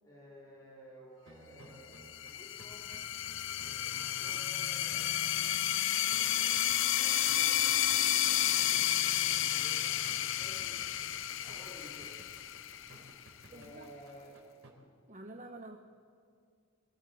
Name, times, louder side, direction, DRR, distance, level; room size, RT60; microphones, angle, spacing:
voice 1, 0.0-2.9 3.4-5.6 5.9-6.5 6.9-12.1 13.5-14.3, equal, 15° left, -6 dB, 4.4 m, -55 dB
sound 1, 1.2-14.7, right 1 dB, 70° right, 3.4 m, -56 dB
sound 2, 2.0-13.2, left 12 dB, 60° left, 0.6 m, -31 dB
sound 3, 6.6-14.5, left 8 dB, 80° left, 1.8 m, -53 dB
voice 2, 13.5-14.0 15.1-15.8, right 2 dB, 35° right, 3 dB, 1.0 m, -48 dB
22.0 x 16.5 x 8.0 m, 2.2 s
head